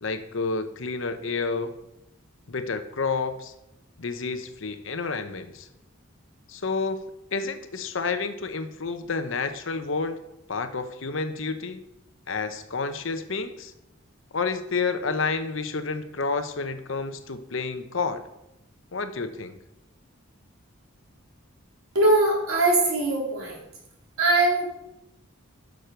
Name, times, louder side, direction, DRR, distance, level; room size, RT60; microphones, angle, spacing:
voice 1, 0.0-1.7 2.5-3.5 4.0-5.7 6.5-7.0 7.3-10.2 10.5-11.8 12.3-13.7 14.3-18.2 18.9-19.6, left 4 dB, 65° left, 9 dB, 0.8 m, -30 dB
voice 2, 21.9-23.6 24.2-24.9, right 2 dB, 85° right, -3 dB, 3.7 m, -21 dB
12.0 x 6.3 x 4.5 m, 0.85 s
head